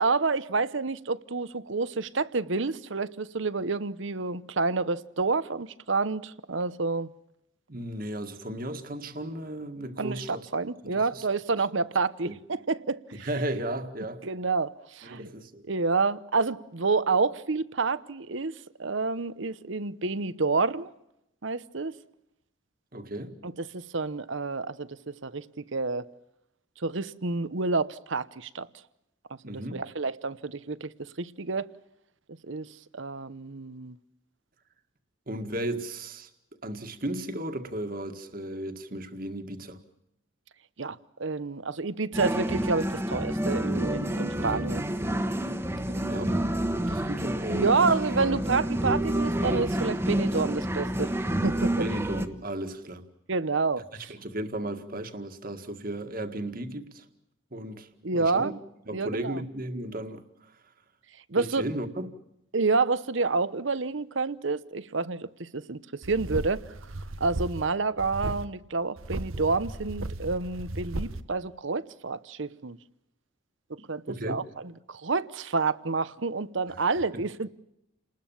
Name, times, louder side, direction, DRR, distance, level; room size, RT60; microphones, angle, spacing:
voice 1, 0.0-7.1 10.0-13.3 14.2-15.3 15.7-20.9 21.4-21.9 23.4-26.0 26.8-28.7 29.5-31.7 32.5-32.7 32.9-33.9 40.8-44.8 45.9-46.3 47.5-51.1 51.4-51.7 53.3-54.1 58.0-58.6 58.9-59.4 61.3-61.6 62.5-66.6 67.2-72.8 73.7-74.4 74.9-77.5, right 4 dB, 65° right, 0.9 m, -29 dB
voice 2, 7.7-10.5 10.8-11.3 12.2-12.4 13.2-14.2 15.0-15.6 22.9-23.4 29.4-29.8 35.3-36.3 36.6-39.8 44.4-44.7 46.1-47.8 50.3-50.5 51.8-53.0 54.1-57.1 57.5-58.5 58.9-60.6 61.4-62.1 74.1-74.4 77.1-77.3, right 1 dB, 45° right, 1.9 m, -35 dB
sound 1, 42.1-52.3, right 1 dB, 10° right, 1.3 m, -28 dB
sound 2, 66.0-67.7 68.0-68.4 69.0-71.2, right 1 dB, 90° right, 1.3 m, -35 dB
29.5 x 20.0 x 7.3 m
head